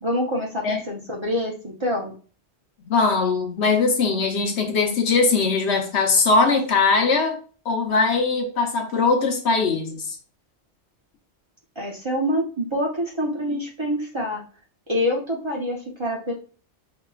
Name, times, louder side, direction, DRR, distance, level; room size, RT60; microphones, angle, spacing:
voice 1, 0.0-2.1 11.8-14.4 14.9-16.3, equal, 25° right, 0.9 m, -26 dB
voice 2, 2.9-7.4 7.6-10.2, left 4 dB, 70° left, 1.1 m, -21 dB
5.5 x 2.9 x 2.3 m
omnidirectional pair, 1.2 m